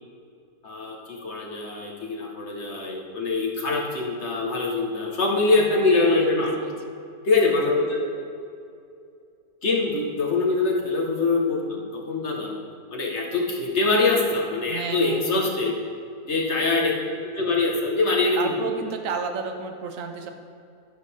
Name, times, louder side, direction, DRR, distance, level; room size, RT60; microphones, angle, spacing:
voice 1, 0.6-6.5 7.2-8.1 9.6-12.5 12.9-15.7 16.3-16.9 17.2-18.7, left 3 dB, 45° left, -1 dB, 1.8 m, -23 dB
voice 2, 5.6-6.7 14.7-15.4 18.4-20.3, right 5 dB, 60° right, 5 dB, 1.3 m, -32 dB
11.5 x 10.5 x 3.6 m, 2.5 s
omnidirectional pair, 1.7 m